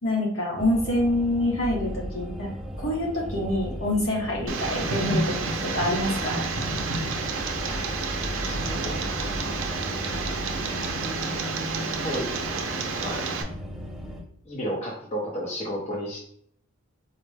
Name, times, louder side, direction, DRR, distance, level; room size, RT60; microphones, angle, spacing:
voice 1, 0.0-2.5 2.8-5.4 5.6-6.4, left 1 dB, 65° left, -2 dB, 1.1 m, -26 dB
sound 1, 0.6-14.2, equal, ahead, 0.4 m, -36 dB
Tick, 4.5-13.4, right 3 dB, 65° right, 0.5 m, -30 dB
voice 2, 8.4-8.9 11.9-12.3 13.0-13.3 14.4-16.2, equal, 30° left, -4 dB, 0.7 m, -32 dB
4.1 x 2.1 x 3.3 m, 0.65 s
head